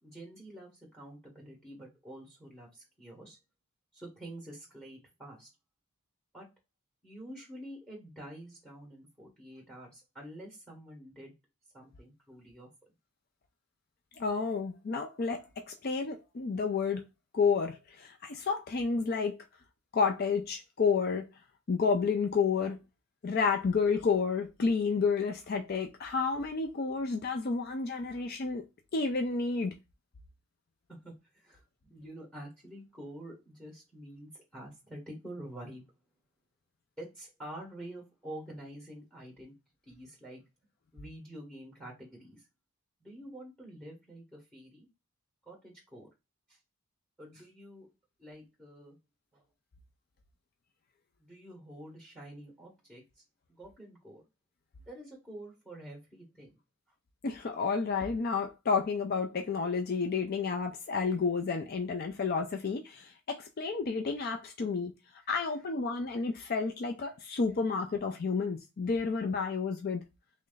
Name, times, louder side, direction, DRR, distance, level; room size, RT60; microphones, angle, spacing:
voice 1, 0.0-3.4 3.9-5.5 6.3-6.5 7.0-11.3 11.7-12.7 30.9-35.8 37.0-39.5 39.8-40.4 40.9-42.5 43.0-44.9 45.4-46.1 46.5-46.6 47.2-47.9 48.2-49.0 49.3-49.4 51.2-53.2 53.5-54.2 54.9-56.6 65.2-65.3, right 1 dB, 5° left, 1.3 m, -47 dB
voice 2, 14.2-17.1 17.3-19.3 19.9-21.3 21.7-22.8 23.2-28.6 28.9-29.7 57.2-64.9 65.3-70.0, left 5 dB, 45° left, 0.4 m, -30 dB
3.2 x 2.5 x 3.8 m
head